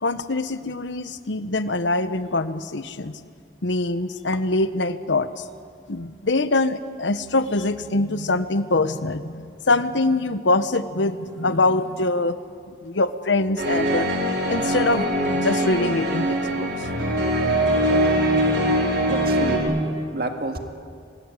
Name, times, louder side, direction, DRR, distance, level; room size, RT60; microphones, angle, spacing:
voice 1, 0.0-3.2 3.6-5.4 5.9-12.4 12.7-14.1 14.5-16.9, left 2 dB, 85° left, 12 dB, 1.1 m, -24 dB
sound 1, 13.6-19.6, right 1 dB, 80° right, 4.6 m, -22 dB
voice 2, 19.0-20.6, right 2 dB, 55° right, 5 dB, 2.0 m, -30 dB
26.5 x 19.0 x 9.7 m, 2.3 s
head